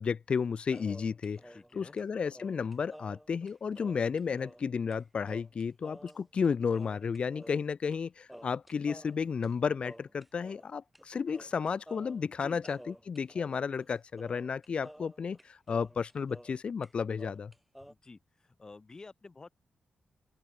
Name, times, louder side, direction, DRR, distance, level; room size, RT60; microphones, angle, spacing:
voice 1, 0.0-17.5, left 6 dB, 45° left, 0.4 m, -33 dB
sound 1, 0.7-4.7 4.9-5.0 5.3-6.5 6.7-8.0 8.3-10.7 10.9-11.1 11.3-16.6 16.8-17.9, equal, ahead, 1.5 m, -51 dB
voice 2, 1.5-2.0 12.4-12.6 17.9-19.5, left 3 dB, 25° left, 3.3 m, -51 dB
open air
wide cardioid pair, 150°, 3 cm